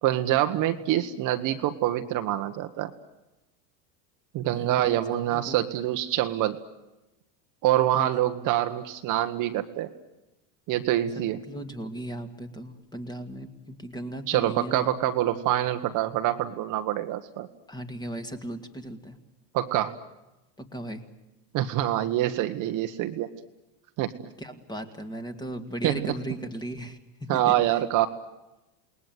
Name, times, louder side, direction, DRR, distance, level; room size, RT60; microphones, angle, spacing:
voice 1, 0.0-2.9 4.3-6.6 7.6-9.9 10.7-11.4 14.3-17.5 19.5-20.0 21.5-23.3 24.0-24.1 25.8-26.1 27.3-28.1, right 13 dB, 40° right, 7 dB, 1.4 m, -25 dB
voice 2, 4.5-4.9 5.3-5.7 7.9-8.1 11.2-14.9 17.7-19.2 20.6-21.0 24.4-27.0 27.3-27.6, right 1 dB, 10° left, 7 dB, 2.1 m, -37 dB
28.5 x 20.0 x 9.3 m, 1.0 s
supercardioid pair, 145°, 49 cm